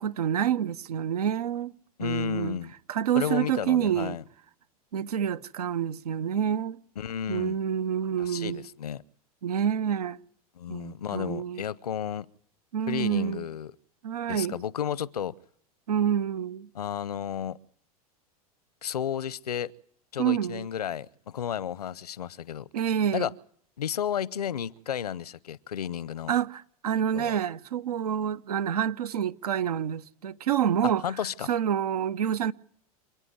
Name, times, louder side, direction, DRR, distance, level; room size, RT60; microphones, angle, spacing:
voice 1, 0.0-1.7 2.0-2.6 2.9-4.2 4.9-6.8 7.3-8.6 9.4-10.2 10.7-11.6 12.7-13.5 14.0-14.6 15.9-16.7 20.2-20.7 22.7-23.3 26.3-31.0 31.5-32.5, right 9 dB, 80° right, 0.9 m, -27 dB
voice 2, 2.0-2.7 3.1-4.2 7.0-7.6 8.2-9.0 10.6-12.3 12.9-13.7 14.3-15.3 16.7-17.6 18.8-19.7 20.1-22.7 23.1-23.3 23.8-26.3 27.1-27.3 30.8-31.5, left 9 dB, 85° left, 0.8 m, -32 dB
28.0 x 9.9 x 9.5 m
hypercardioid pair, 95°, 19 cm